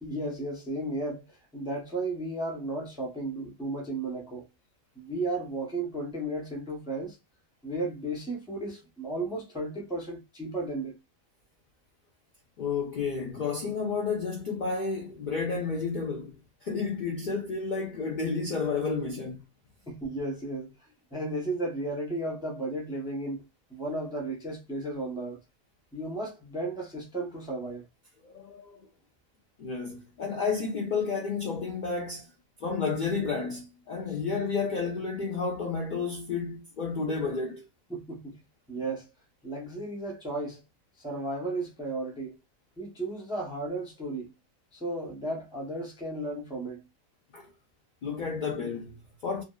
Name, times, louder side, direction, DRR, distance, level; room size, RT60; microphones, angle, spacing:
voice 1, 0.0-4.5 4.9-7.2 7.6-11.0 19.9-20.7 21.1-23.4 23.7-25.4 25.9-27.9 34.1-34.2 37.9-38.4 38.7-39.1 39.4-40.6 41.0-42.3 42.8-44.3 44.7-46.8, right 2 dB, 5° right, 0.4 m, -34 dB
voice 2, 12.6-16.4 16.6-19.4 28.2-28.8 29.6-32.2 32.6-37.6 47.3-47.5 48.0-49.4, left 4 dB, 75° left, 0.4 m, -31 dB
2.6 x 2.3 x 2.2 m
omnidirectional pair, 1.4 m